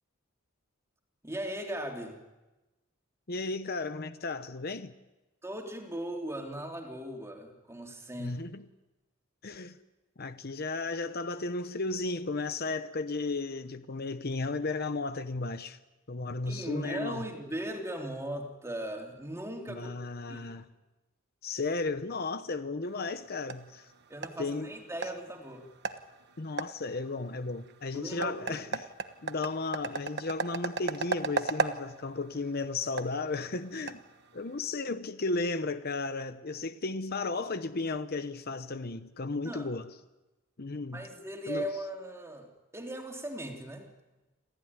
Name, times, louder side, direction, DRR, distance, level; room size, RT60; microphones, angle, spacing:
voice 1, 1.2-2.2 5.4-8.4 16.4-19.9 20.3-20.6 24.1-25.7 27.9-28.6 39.4-39.7 40.9-42.5 42.7-43.9, right 1 dB, 15° right, 3.1 m, -38 dB
voice 2, 3.3-4.9 8.2-8.6 9.4-9.8 10.2-15.8 16.1-17.3 19.7-20.7 21.4-23.9 24.4-24.7 26.4-28.8 29.2-34.0 34.3-39.9 40.6-41.0 41.5-41.7, left 3 dB, 50° left, 0.9 m, -34 dB
sound 1, 22.8-34.7, right 4 dB, 55° right, 1.2 m, -38 dB
26.5 x 16.5 x 9.7 m
head